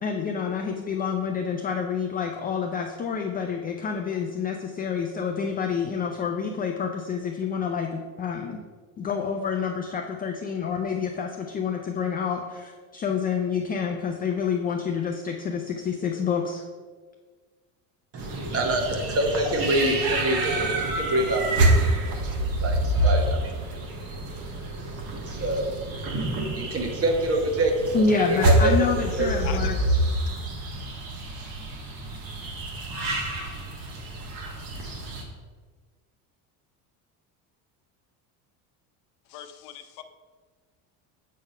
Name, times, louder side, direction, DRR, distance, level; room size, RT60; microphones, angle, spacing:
voice 1, 0.0-8.6 9.0-16.6 27.9-29.8, left 6 dB, 25° left, 3 dB, 0.4 m, -28 dB
voice 2, 18.1-29.3 30.3-30.4, right 1 dB, 35° right, 4 dB, 1.1 m, -27 dB
sound 1, 18.2-35.2, right 2 dB, 55° right, 1.5 m, -27 dB
voice 3, 29.4-29.9 30.2-30.5 39.3-40.0, left 10 dB, 70° left, 8 dB, 0.8 m, -41 dB
7.4 x 3.9 x 5.3 m, 1.5 s
cardioid pair, 140°, 40 cm